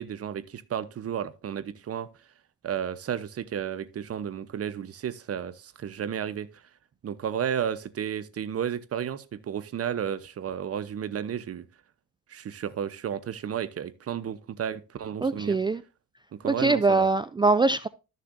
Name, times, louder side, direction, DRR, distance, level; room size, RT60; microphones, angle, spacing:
voice 1, 0.0-2.1 2.6-6.5 7.0-11.7 12.3-15.6 16.3-17.1, right 9 dB, 50° right, 1.0 m, -32 dB
voice 2, 15.2-15.8 16.4-17.9, right 3 dB, 15° right, 0.3 m, -23 dB
13.0 x 6.7 x 2.7 m
cardioid pair, 90°, 30 cm